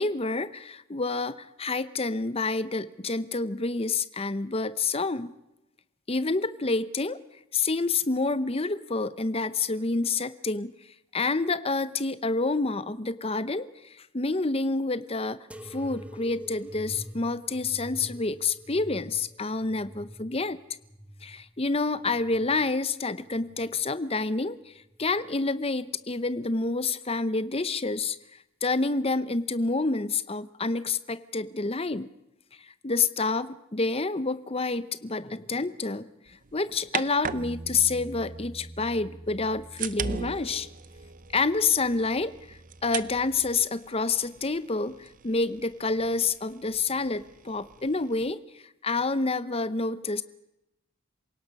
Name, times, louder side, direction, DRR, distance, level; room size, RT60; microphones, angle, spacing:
voice 1, 0.0-5.3 6.1-7.2 7.5-10.7 11.1-15.4 15.6-20.6 21.2-24.7 25.0-28.2 28.6-32.1 32.6-40.7 41.3-50.2, left 3 dB, 25° left, 14 dB, 0.8 m, -28 dB
sound 1, 15.5-22.7 23.2-24.0 24.8-25.3 26.3-26.4, equal, 5° right, 0.8 m, -46 dB
sound 2, 36.3-38.5 39.3-48.3, right 6 dB, 35° right, 0.6 m, -40 dB
Bass guitar, 37.2-43.5, right 1 dB, 65° left, 4.5 m, -46 dB
27.0 x 17.5 x 5.4 m, 0.87 s
head